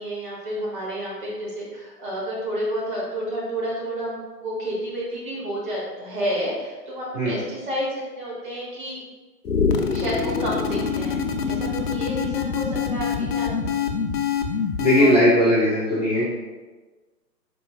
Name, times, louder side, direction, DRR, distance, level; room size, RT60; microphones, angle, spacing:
voice 1, 0.0-9.0 9.9-11.2 11.5-13.1 13.3-13.7 15.0-15.2, equal, 30° right, -6 dB, 1.0 m, -30 dB
sound 1, 9.4-15.2, left 6 dB, 70° left, 0.6 m, -25 dB
voice 2, 14.8-16.2, equal, 25° left, -9 dB, 0.6 m, -18 dB
4.3 x 3.0 x 2.4 m, 1.3 s
figure-of-eight pair, 140°, 50 cm